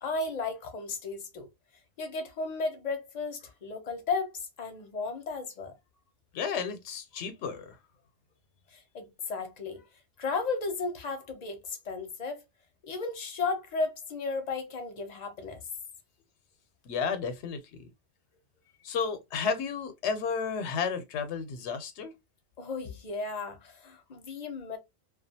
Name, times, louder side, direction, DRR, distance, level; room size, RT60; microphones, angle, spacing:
voice 1, 0.0-1.5 2.0-5.7 8.7-9.9 10.2-12.4 12.8-15.7 22.6-24.8, left 4 dB, 45° left, 0.6 m, -34 dB
voice 2, 6.3-7.8 16.9-17.9 18.8-22.1, left 6 dB, 85° left, 0.9 m, -32 dB
2.4 x 2.3 x 2.6 m
omnidirectional pair, 1.1 m